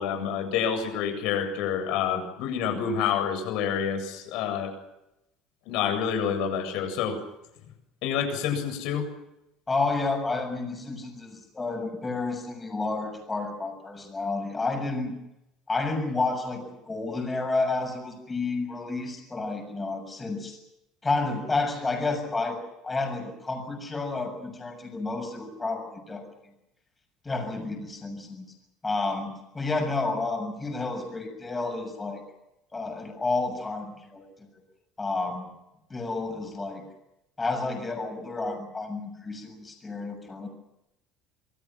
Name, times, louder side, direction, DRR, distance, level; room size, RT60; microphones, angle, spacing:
voice 1, 0.0-4.7 5.7-7.2 8.0-9.1, left 7 dB, 65° left, 7 dB, 7.8 m, -28 dB
voice 2, 9.7-15.2 15.7-20.6 21.0-22.6 22.8-26.2 27.2-28.4 28.8-32.2 32.7-34.2 35.0-35.5 35.9-36.8 37.4-40.5, left 3 dB, 15° left, 5 dB, 7.0 m, -30 dB
27.5 x 24.0 x 6.2 m, 0.88 s
cardioid pair, 165°, 0 cm